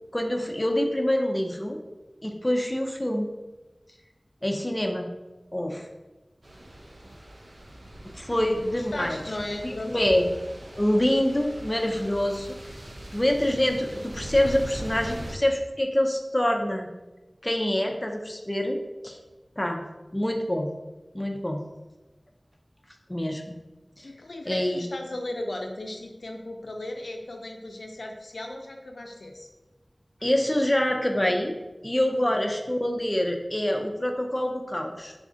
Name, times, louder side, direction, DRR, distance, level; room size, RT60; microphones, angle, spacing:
voice 1, 0.1-1.8 2.2-3.3 4.4-5.1 5.5-5.9 8.0-9.2 9.5-10.2 10.8-12.6 13.1-16.9 17.4-19.2 19.6-19.8 20.1-20.7 21.1-21.6 23.1-23.6 24.0-24.1 24.5-24.8 30.2-31.5 31.8-35.1, left 1 dB, 20° left, 3 dB, 0.5 m, -26 dB
sound 1, 6.4-15.3, right 1 dB, 70° right, 0.5 m, -41 dB
voice 2, 8.4-10.3 24.0-29.5 32.0-32.1, left 1 dB, 85° left, 2 dB, 0.4 m, -36 dB
4.1 x 2.4 x 3.8 m, 1.1 s
wide cardioid pair, 55°, 0 cm